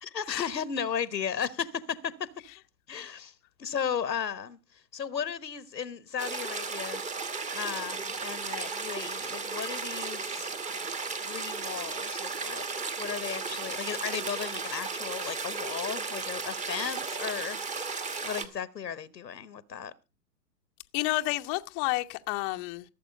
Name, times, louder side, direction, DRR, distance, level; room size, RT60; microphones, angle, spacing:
voice 1, 0.0-2.3 2.9-3.3 3.6-4.6 4.9-7.0 7.5-10.5 11.2-12.6 13.0-17.6 18.2-19.9, left 7 dB, 80° left, 1.2 m, -35 dB
sound 1, 6.2-18.5, right 4 dB, 15° right, 1.2 m, -35 dB
voice 2, 20.9-22.8, left 20 dB, 25° left, 0.8 m, -30 dB
16.5 x 7.6 x 5.2 m
figure-of-eight pair, 115°, 49 cm